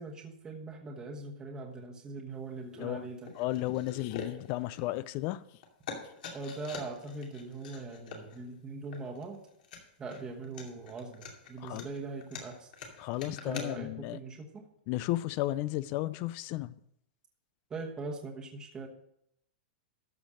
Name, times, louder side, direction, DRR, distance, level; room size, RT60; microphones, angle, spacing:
voice 1, 0.0-3.3 6.3-9.4 10.0-12.7 13.3-14.6 17.7-18.9, right 3 dB, 15° right, 1.2 m, -41 dB
sound 1, 2.7-2.9 3.3-5.4 5.6-13.7, left 5 dB, 65° left, 2.4 m, -45 dB
voice 2, 2.8-3.1 3.4-5.4 11.6-11.9 13.0-14.2 14.9-16.7, left 16 dB, 35° left, 0.4 m, -33 dB
13.0 x 5.2 x 6.3 m
supercardioid pair, 160°, 5 cm